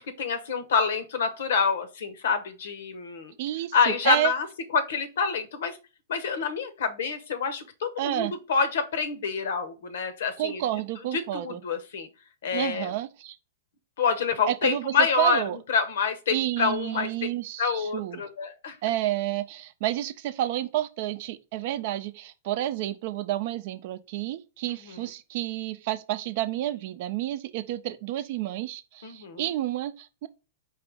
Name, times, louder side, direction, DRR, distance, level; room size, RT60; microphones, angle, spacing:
voice 1, 0.0-3.3 3.7-4.5 4.7-5.8 6.1-10.8 11.1-12.1 12.4-12.9 14.0-15.4 15.7-17.1 17.6-18.8 24.7-25.0 29.0-29.4, left 5 dB, 75° left, 0.9 m, -27 dB
voice 2, 3.4-4.3 8.0-8.3 10.4-11.6 12.5-13.4 14.5-15.6 16.3-18.2 18.8-30.3, right 14 dB, 55° right, 0.5 m, -30 dB
4.8 x 3.0 x 3.4 m
hypercardioid pair, 130°, 0 cm